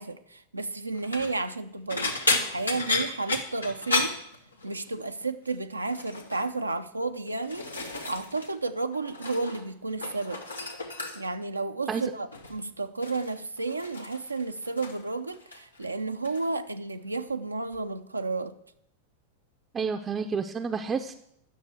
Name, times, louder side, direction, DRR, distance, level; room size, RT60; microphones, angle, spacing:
voice 1, 0.0-4.1 4.6-10.4 11.1-18.5, right 3 dB, 80° right, 7 dB, 0.6 m, -32 dB
sound 1, 0.9-1.3 1.9-4.9 5.2-5.6 5.9-6.4 7.1-8.5 8.8-9.6 9.9-11.4 12.3-12.6 13.0-15.1 15.3-15.9 16.2-16.5 17.7-17.8, left 3 dB, 80° left, 1.3 m, -32 dB
voice 2, 19.7-21.1, right 5 dB, 20° right, 5 dB, 0.6 m, -30 dB
10.5 x 6.8 x 7.9 m, 0.74 s
figure-of-eight pair, 90°, 0 cm